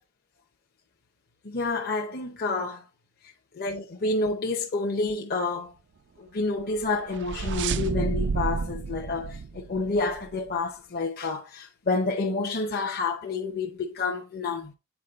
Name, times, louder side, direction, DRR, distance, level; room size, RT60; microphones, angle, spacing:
voice 1, 1.4-2.8 3.5-5.7 6.2-14.7, left 3 dB, 45° left, 0.9 m, -29 dB
sound 1, 6.7-10.3, right 5 dB, 55° right, 0.4 m, -31 dB
8.3 x 4.7 x 3.6 m
head